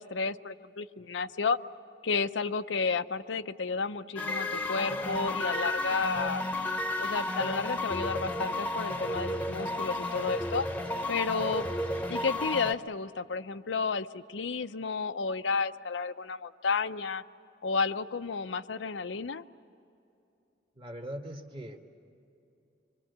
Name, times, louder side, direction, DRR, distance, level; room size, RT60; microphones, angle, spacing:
voice 1, 0.0-1.6 2.0-6.4 7.0-10.7 11.1-11.6 12.1-17.2 17.6-19.4, left 4 dB, 90° left, 10 dB, 0.7 m, -32 dB
sound 1, 4.2-12.7, left 1 dB, 10° left, 0.9 m, -32 dB
voice 2, 20.7-21.8, equal, 30° right, 4 dB, 1.6 m, -40 dB
25.5 x 24.0 x 8.1 m, 2.7 s
head